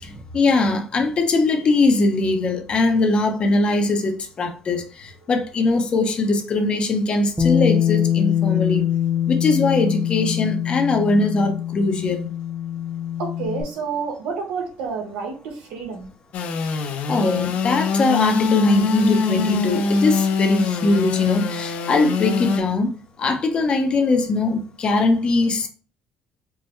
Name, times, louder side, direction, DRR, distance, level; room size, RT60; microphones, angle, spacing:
voice 1, 0.0-8.8 9.3-12.3 16.7-16.8 17.1-22.9 23.2-25.7, left 3 dB, 40° left, 0.8 m, -21 dB
Bass guitar, 7.4-13.6, left 10 dB, 5° right, 0.9 m, -23 dB
voice 2, 13.2-16.1, right 5 dB, 90° right, 1.1 m, -29 dB
Engine / Sawing, 16.3-22.6, left 5 dB, 65° left, 0.5 m, -23 dB
4.6 x 2.2 x 3.2 m
cardioid pair, 105°, 3 cm